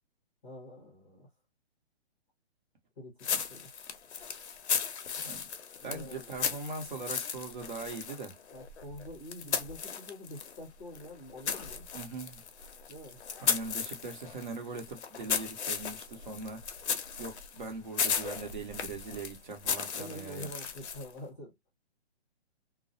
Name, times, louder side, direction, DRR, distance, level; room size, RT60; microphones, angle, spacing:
voice 1, 0.4-1.3 3.0-3.7 5.8-6.5 8.5-11.9 12.9-13.2 20.0-21.5, left 1 dB, 15° left, 0.7 m, -46 dB
sound 1, 3.2-10.6 10.9-21.2, left 7 dB, 90° left, 0.7 m, -36 dB
voice 2, 5.8-8.3 11.9-12.4 13.4-16.6 17.2-20.5, right 3 dB, 45° right, 0.9 m, -41 dB
2.4 x 2.0 x 2.6 m
hypercardioid pair, 175°, 33 cm